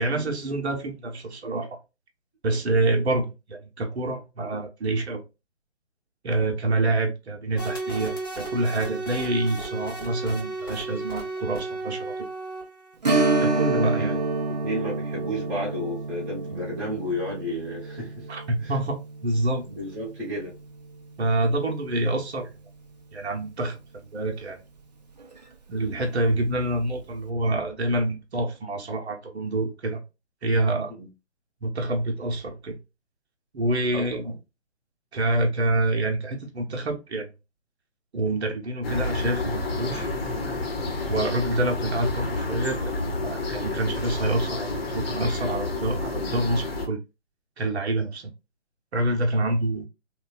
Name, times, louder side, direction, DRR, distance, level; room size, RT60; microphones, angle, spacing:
voice 1, 0.0-1.8 2.4-5.2 6.2-12.1 13.4-14.2 18.3-19.6 21.2-22.5 23.1-24.6 25.7-30.0 30.4-30.9 31.6-32.8 33.5-34.3 35.1-37.3 38.1-40.2 41.0-47.0 47.6-48.3 48.9-49.8, right 2 dB, 65° right, 0.8 m, -27 dB
sound 1, 7.6-12.9, right 2 dB, 20° left, 0.5 m, -34 dB
Strum, 13.0-22.2 22.5-22.6 25.2-25.4 25.8-25.9, right 3 dB, 35° right, 0.4 m, -29 dB
voice 2, 14.5-18.3 18.6-18.8 19.6-20.6 31.0-31.1 33.9-34.0, left 1 dB, 5° right, 0.8 m, -32 dB
sound 2, 38.8-46.9, left 3 dB, 55° left, 0.9 m, -29 dB
3.1 x 2.2 x 2.2 m
figure-of-eight pair, 140°, 36 cm